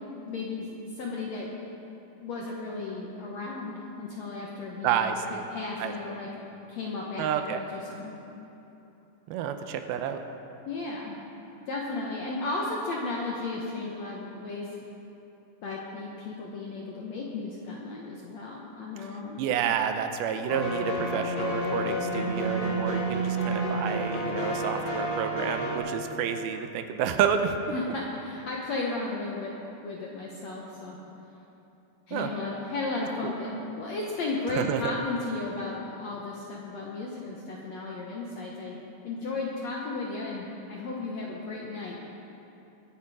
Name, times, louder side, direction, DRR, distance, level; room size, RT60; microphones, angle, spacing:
voice 1, 0.0-1.5 2.2-5.2 5.5-8.1 10.6-11.2 11.7-14.7 15.6-19.4 27.7-31.0 32.1-38.8 39.0-42.0, left 3 dB, 65° left, -3 dB, 1.7 m, -34 dB
voice 2, 4.8-5.4 5.8-5.9 7.2-7.6 9.3-10.2 19.4-27.6 32.1-32.3 33.2-33.3 34.5-34.9, right 8 dB, 80° right, 7 dB, 2.5 m, -29 dB
sound 1, 20.5-25.8, right 1 dB, 45° left, 3.7 m, -29 dB
22.0 x 8.6 x 4.9 m, 2.9 s
omnidirectional pair, 4.5 m